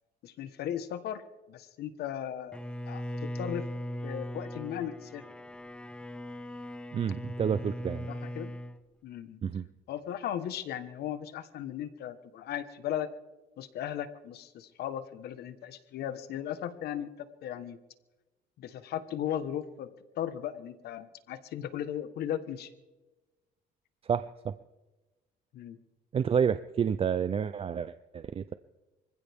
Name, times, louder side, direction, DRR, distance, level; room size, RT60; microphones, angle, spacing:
voice 1, 0.2-1.2 1.5-2.6 2.9-3.6 4.0-5.2 8.1-8.5 9.0-9.4 9.9-13.1 13.6-17.8 18.6-22.7 25.5-25.8, left 10 dB, 70° left, 12 dB, 1.4 m, -37 dB
Bowed string instrument, 2.5-8.8, equal, 5° left, 0.9 m, -39 dB
voice 2, 6.9-8.1 9.4-9.6 24.1-24.5 26.1-28.5, right 7 dB, 35° right, 13 dB, 0.5 m, -29 dB
25.0 x 15.5 x 3.6 m, 1.1 s
cardioid pair, 110°, 17 cm